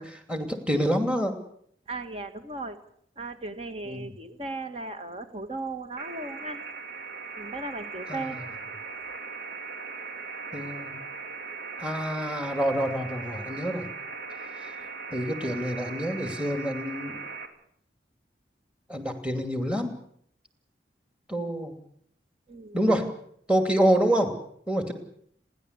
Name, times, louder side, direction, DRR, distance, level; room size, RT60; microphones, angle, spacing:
voice 1, 0.0-1.4 3.9-4.1 8.1-8.4 10.5-11.0 11.8-13.9 14.6-14.7 15.1-17.2 18.9-19.9 21.3-21.7 22.7-23.1 23.5-24.4 24.7-24.9, equal, 5° right, 6 dB, 2.6 m, -27 dB
voice 2, 1.9-2.8 3.2-6.6 7.4-8.4 22.5-22.8, right 2 dB, 30° right, 8 dB, 1.9 m, -36 dB
sound 1, 6.0-17.5, right 4 dB, 60° right, 2.7 m, -39 dB
29.5 x 11.0 x 8.2 m, 0.67 s
head